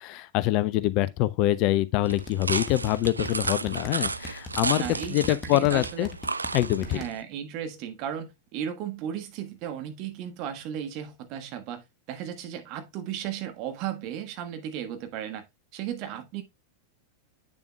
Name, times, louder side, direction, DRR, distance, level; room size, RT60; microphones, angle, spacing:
voice 1, 0.0-4.8 5.1-6.1 6.5-7.0, left 15 dB, 40° left, 0.5 m, -25 dB
sound 1, 2.0-7.2, right 3 dB, 80° right, 0.3 m, -33 dB
sound 2, 2.1-7.1, left 3 dB, 25° left, 1.5 m, -39 dB
voice 2, 4.7-6.1 6.8-15.5 15.7-16.4, right 9 dB, 40° right, 1.4 m, -35 dB
8.1 x 7.0 x 2.3 m
figure-of-eight pair, 90°, 0 cm